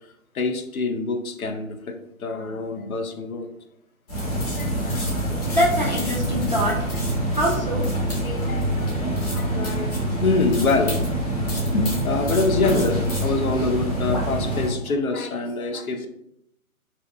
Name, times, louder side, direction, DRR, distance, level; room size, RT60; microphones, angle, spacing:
voice 1, 0.3-3.5 4.6-5.6 8.2-11.2 11.7-16.1, left 3 dB, 80° left, 5 dB, 0.6 m, -26 dB
sound 1, 4.1-14.7, right 1 dB, 30° left, 0.8 m, -25 dB
voice 2, 5.0-7.0 7.3-7.8, equal, 35° right, -4 dB, 0.4 m, -25 dB
2.6 x 2.1 x 2.5 m, 0.75 s
figure-of-eight pair, 140°, 42 cm